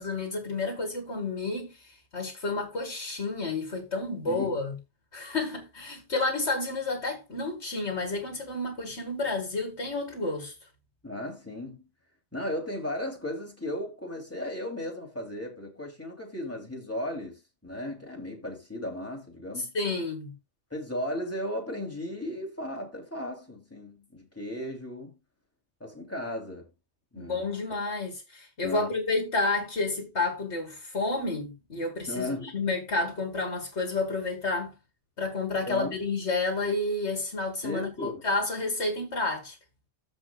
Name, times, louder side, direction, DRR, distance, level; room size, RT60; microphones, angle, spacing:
voice 1, 0.0-4.8 5.1-10.5 19.6-20.3 27.2-34.7 35.2-39.6, left 3 dB, 75° left, 2.5 m, -30 dB
voice 2, 11.0-11.8 12.3-19.7 20.7-25.1 25.8-26.7 27.1-27.4 28.6-28.9 32.1-32.5 35.6-35.9 37.6-38.2, left 1 dB, 10° left, 3.1 m, -35 dB
14.5 x 5.5 x 2.4 m
omnidirectional pair, 1.2 m